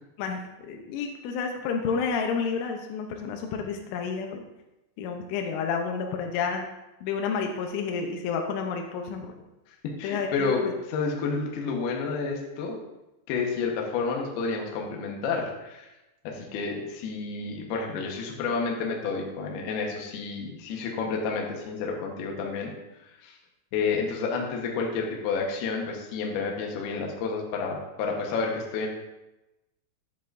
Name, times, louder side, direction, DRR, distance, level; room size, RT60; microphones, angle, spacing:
voice 1, 0.2-4.4 5.0-6.7 7.0-9.3 10.0-10.7, left 5 dB, 90° left, 3 dB, 3.3 m, -30 dB
voice 2, 9.8-10.6 10.9-12.8 13.3-15.9 16.2-22.7 23.2-23.4 23.7-28.9, left 4 dB, 70° left, 0 dB, 2.8 m, -30 dB
11.0 x 7.7 x 2.6 m, 0.99 s
omnidirectional pair, 5.4 m